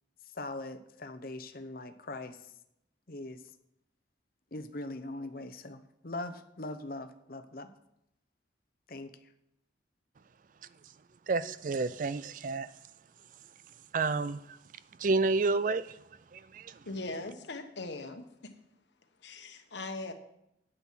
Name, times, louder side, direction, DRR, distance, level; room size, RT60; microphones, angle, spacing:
voice 1, 0.2-2.5 3.1-3.4 4.5-7.7 8.9-9.3, left 2 dB, 50° left, 0.8 m, -41 dB
voice 2, 11.3-12.7 13.9-14.6 15.0-16.0 16.3-16.8, right 3 dB, 45° right, 0.4 m, -30 dB
voice 3, 16.8-18.2 19.2-20.1, left 2 dB, 70° left, 1.2 m, -39 dB
9.4 x 8.1 x 5.8 m
head